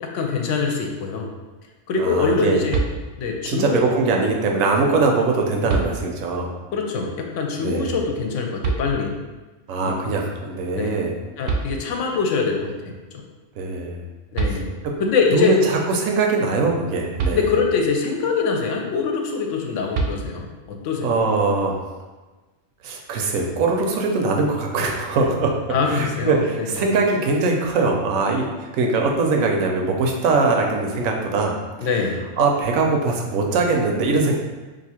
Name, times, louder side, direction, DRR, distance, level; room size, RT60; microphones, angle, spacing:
voice 1, 0.0-1.3 1.9-2.8 3.2-3.8 6.7-9.1 9.8-10.0 10.7-11.0 11.4-12.9 14.3-14.7 15.0-15.6 17.3-21.2 25.7-26.8 31.8-32.3, left 5 dB, 75° left, 2 dB, 0.9 m, -23 dB
voice 2, 2.0-2.6 3.5-6.5 7.6-8.0 9.7-11.1 13.6-14.0 14.8-14.9 15.3-17.4 21.0-21.8 22.8-25.5 25.9-31.5 32.4-34.4, right 3 dB, 90° right, 1 dB, 1.0 m, -21 dB
sound 1, 2.7-3.5 5.0-5.1 5.7-6.4 8.6-9.4 11.1-11.2 11.5-12.3 14.0-14.1 14.3-15.1 17.2-18.0 19.9-20.7, right 4 dB, 65° right, 0.7 m, -27 dB
2.7 x 2.6 x 4.2 m, 1.2 s
omnidirectional pair, 1.3 m